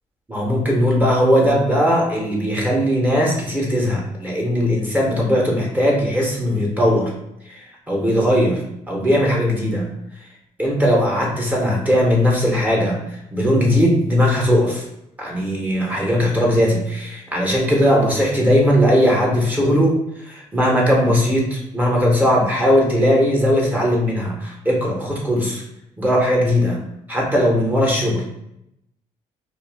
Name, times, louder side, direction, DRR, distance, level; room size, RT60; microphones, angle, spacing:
voice 1, 0.3-7.1 7.5-8.6 8.9-9.9 10.6-14.8 15.2-19.9 20.2-25.6 26.0-26.8 27.1-28.2, equal, 15° right, -3 dB, 0.7 m, -18 dB
2.4 x 2.3 x 3.3 m, 0.83 s
cardioid pair, 100°, 13 cm